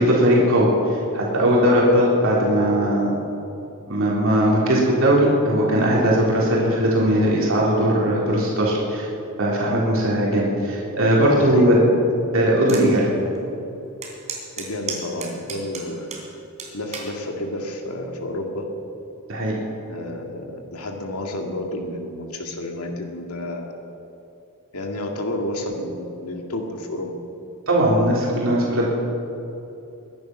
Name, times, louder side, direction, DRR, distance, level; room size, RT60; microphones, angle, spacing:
voice 1, 0.0-3.1 3.9-9.1 9.4-11.8 12.3-13.1 19.3-19.5 27.7-28.9, equal, 65° right, -4 dB, 3.4 m, -19 dB
voice 2, 11.3-11.9 14.6-16.1 16.7-18.7 19.9-23.7 24.7-27.1, left 1 dB, 85° left, 2 dB, 2.1 m, -30 dB
sound 1, 12.7-12.9 13.3-13.4 14.0-16.2 16.6-17.1 17.8-18.1, right 5 dB, 30° right, 3.4 m, -32 dB
22.5 x 10.5 x 6.1 m, 2.9 s
head